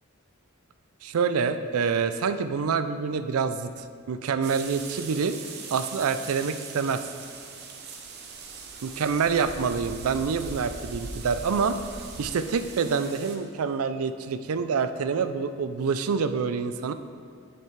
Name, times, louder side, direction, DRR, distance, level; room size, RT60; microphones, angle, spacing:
voice 1, 1.0-3.7 4.1-5.4 5.7-7.0 8.8-11.8 12.2-16.9, right 5 dB, 80° right, 10 dB, 0.4 m, -26 dB
sound 1, 4.4-13.4, right 4 dB, 50° right, 0.7 m, -40 dB
10.5 x 5.8 x 3.2 m, 2.1 s
head